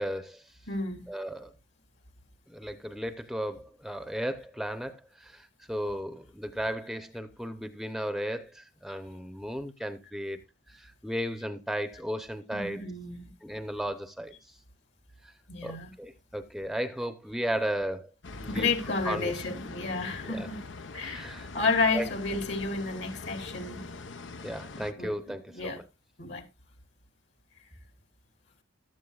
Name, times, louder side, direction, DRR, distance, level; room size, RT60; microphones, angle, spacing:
voice 1, 0.0-0.5 1.1-1.5 2.5-12.8 13.4-14.6 15.2-15.3 15.6-18.1 18.4-18.7 19.0-19.3 20.2-20.5 21.0-21.5 21.9-22.1 24.4-25.8, equal, ahead, 0.7 m, -35 dB
voice 2, 0.7-1.1 12.5-13.3 15.5-15.9 18.5-20.6 20.9-23.8 25.0-25.1 25.5-25.8 26.2-26.4, left 3 dB, 70° left, 2.8 m, -31 dB
sound 1, 18.2-24.9, left 3 dB, 85° left, 0.9 m, -43 dB
15.0 x 12.0 x 2.4 m
head